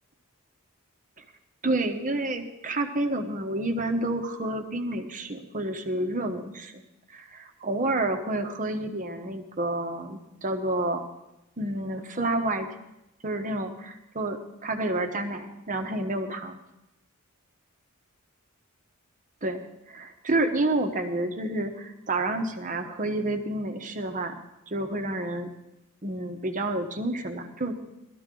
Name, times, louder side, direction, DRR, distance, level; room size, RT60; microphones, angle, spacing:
voice 1, 1.6-6.8 7.1-11.0 11.6-12.7 13.2-16.6 19.4-19.6 19.9-24.3 24.7-25.5 26.0-27.8, right 2 dB, 35° right, 6 dB, 1.1 m, -29 dB
18.5 x 13.0 x 3.8 m, 0.92 s
head